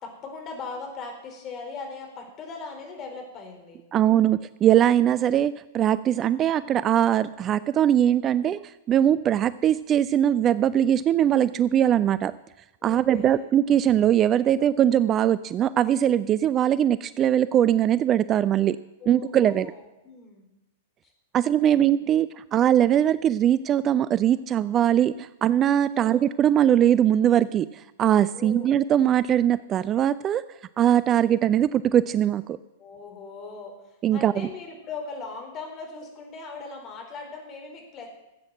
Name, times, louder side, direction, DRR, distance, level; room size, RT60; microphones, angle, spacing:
voice 1, 0.0-4.3 12.8-13.5 19.0-20.5 21.0-21.1 21.4-21.9 22.4-22.5 25.9-26.2 28.2-28.8 31.3-31.7 32.8-38.1, left 4 dB, 30° left, 3 dB, 4.2 m, -40 dB
voice 2, 3.9-8.6 8.9-12.3 12.8-18.8 19.1-19.7 21.3-30.4 30.8-32.6 34.0-34.5, right 10 dB, 30° right, 17 dB, 0.4 m, -21 dB
15.0 x 8.4 x 7.5 m, 0.93 s
hypercardioid pair, 105°, 0 cm